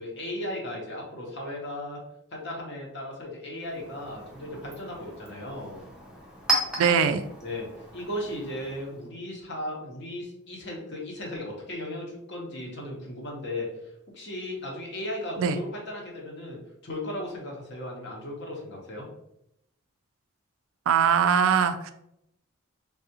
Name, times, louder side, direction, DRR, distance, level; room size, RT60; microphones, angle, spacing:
voice 1, 0.0-2.0 2.3-5.8 7.4-13.7 14.1-19.1, left 1 dB, 55° left, -1 dB, 0.9 m, -36 dB
Chink clink, 3.6-9.1, right 2 dB, 5° right, 0.5 m, -35 dB
voice 2, 6.8-7.2 15.4-15.6 20.9-21.9, right 7 dB, 75° right, 9 dB, 0.3 m, -22 dB
3.4 x 2.4 x 2.8 m, 0.80 s
head